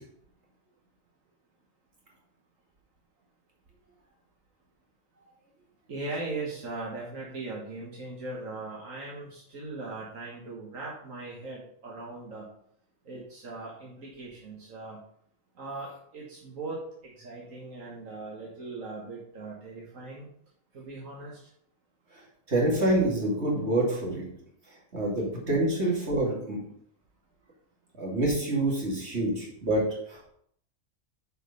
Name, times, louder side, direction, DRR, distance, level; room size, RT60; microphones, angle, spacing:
voice 1, 5.9-12.5 13.1-15.0 15.6-20.3 20.7-21.4, right 3 dB, 80° right, -3 dB, 1.9 m, -39 dB
voice 2, 22.5-24.2 24.9-26.6 28.0-30.3, right 1 dB, 55° right, -3 dB, 2.9 m, -27 dB
8.9 x 4.9 x 5.4 m, 0.68 s
omnidirectional pair, 1.3 m